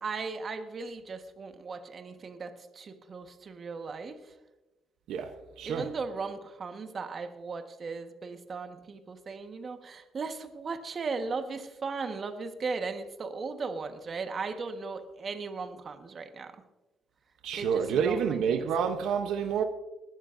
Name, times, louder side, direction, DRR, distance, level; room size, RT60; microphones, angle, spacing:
voice 1, 0.0-4.3 5.6-16.5 17.6-18.7, right 4 dB, 45° right, 1.4 m, -37 dB
voice 2, 5.6-5.9 17.4-19.6, right 7 dB, 85° right, 0.9 m, -28 dB
20.5 x 12.0 x 2.6 m
cardioid pair, 90°, 0 cm